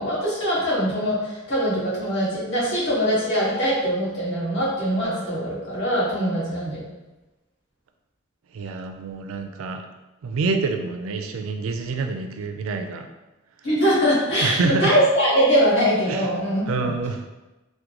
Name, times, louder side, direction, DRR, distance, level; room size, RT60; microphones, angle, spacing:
voice 1, 0.0-6.8 13.6-17.0, equal, 60° left, -9 dB, 1.5 m, -22 dB
voice 2, 8.5-9.8 10.2-13.1 14.4-14.9 16.1-16.4 16.7-17.2, right 3 dB, 75° right, 6 dB, 0.3 m, -27 dB
3.6 x 2.2 x 2.9 m, 1.1 s
head